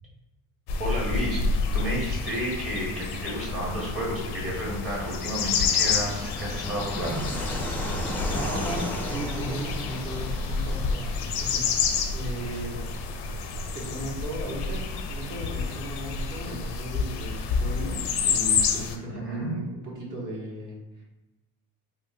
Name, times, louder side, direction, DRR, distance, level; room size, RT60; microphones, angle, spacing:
sound 1, 0.7-19.0, left 5 dB, 85° left, 0.5 m, -29 dB
voice 1, 0.8-7.3 19.1-19.5, equal, 35° right, -4 dB, 1.4 m, -31 dB
Fixed-wing aircraft airplane, 2.2-18.3, equal, 5° left, 0.3 m, -38 dB
voice 2, 8.3-12.8 13.7-20.8, right 1 dB, 50° right, -4 dB, 1.2 m, -36 dB
3.6 x 2.3 x 2.5 m, 1.0 s
cardioid pair, 80°, 39 cm